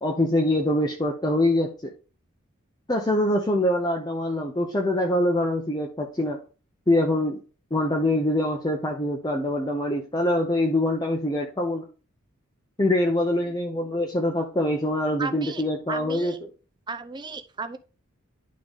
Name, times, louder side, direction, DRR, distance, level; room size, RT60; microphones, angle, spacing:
voice 1, 0.0-1.9 2.9-6.4 6.9-7.4 7.7-11.8 12.8-16.3, left 1 dB, 20° left, 1 dB, 0.7 m, -24 dB
voice 2, 15.2-16.4 16.9-17.8, right 4 dB, 20° right, 8 dB, 0.5 m, -35 dB
10.5 x 3.8 x 3.5 m, 0.37 s
head